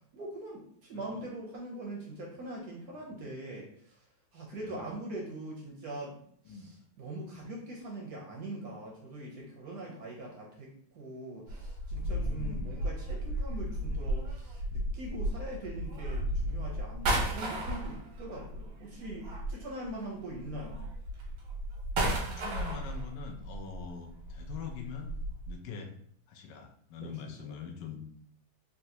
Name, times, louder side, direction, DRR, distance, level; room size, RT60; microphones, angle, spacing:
voice 1, 0.1-4.0 4.3-6.2 6.5-20.8 27.0-27.6, right 1 dB, 70° right, -2 dB, 0.9 m, -42 dB
voice 2, 6.5-6.8 12.0-12.7 22.3-25.1 25.5-25.9 26.3-28.0, left 6 dB, 75° left, 2 dB, 1.1 m, -43 dB
sound 1, 11.5-19.9 20.3-25.5, right 1 dB, 90° right, 1.7 m, -34 dB
4.0 x 2.2 x 2.7 m, 0.63 s
omnidirectional pair, 2.3 m